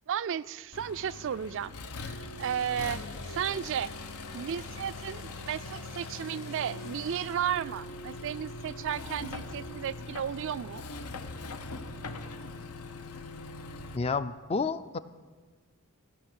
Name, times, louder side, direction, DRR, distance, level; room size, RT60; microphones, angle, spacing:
voice 1, 0.1-1.7 2.0-3.0 3.3-3.9 4.3-10.8, right 9 dB, 55° right, 17 dB, 0.3 m, -34 dB
Accelerating revving vroom, 0.7-14.0, left 2 dB, 85° left, 0.8 m, -41 dB
sound 1, 2.4-7.3, left 3 dB, 65° left, 3.0 m, -50 dB
voice 2, 13.9-15.0, left 4 dB, 25° left, 14 dB, 0.4 m, -30 dB
15.5 x 6.0 x 8.6 m, 1.4 s
head